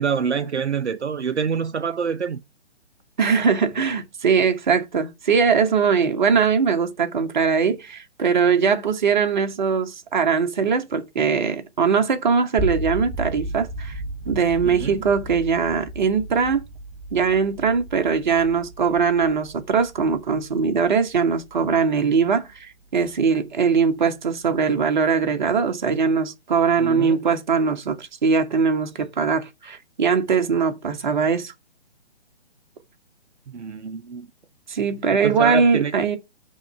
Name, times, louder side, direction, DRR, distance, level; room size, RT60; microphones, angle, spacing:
voice 1, 0.0-2.4 14.6-15.1 26.8-27.2 33.5-34.3 35.1-36.0, right 6 dB, 75° right, 0.6 m, -26 dB
voice 2, 3.2-13.9 14.3-16.6 17.1-31.5 34.7-36.2, right 5 dB, 40° right, 1.0 m, -21 dB
sound 1, 12.6-22.6, right 1 dB, 5° right, 3.0 m, -34 dB
6.2 x 3.1 x 5.4 m
figure-of-eight pair, 135°, 35 cm